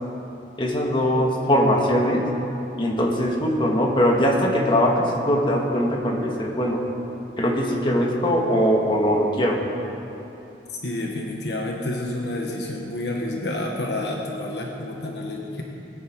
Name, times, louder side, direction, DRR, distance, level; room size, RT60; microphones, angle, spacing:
voice 1, 0.6-2.2 2.8-6.8 7.4-9.6, equal, 30° left, 0 dB, 1.8 m, -21 dB
voice 2, 10.8-15.6, left 1 dB, 75° left, 0 dB, 1.4 m, -29 dB
21.0 x 9.8 x 4.7 m, 2.9 s
head